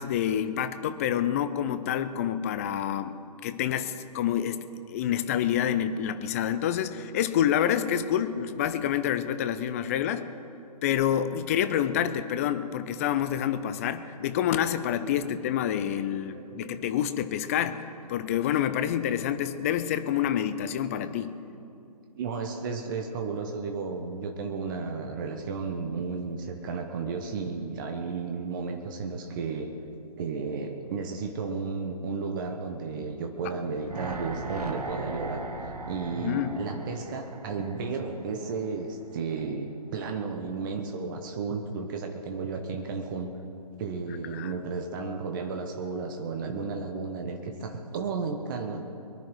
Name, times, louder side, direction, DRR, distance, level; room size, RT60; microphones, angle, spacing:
voice 1, 0.0-3.2 3.4-4.6 4.9-10.3 10.8-17.8 18.1-21.4 36.2-36.6 44.3-44.5, left 10 dB, 20° left, 11 dB, 0.6 m, -27 dB
voice 2, 9.8-10.3 15.2-15.4 16.2-16.8 22.2-29.7 30.2-35.5 35.9-43.3 43.8-48.9, right 4 dB, 30° right, 4 dB, 1.1 m, -33 dB
sound 1, 33.6-38.8 39.1-39.2, right 2 dB, 70° right, 1.7 m, -38 dB
23.0 x 10.5 x 4.8 m, 2.6 s
figure-of-eight pair, 135°, 20 cm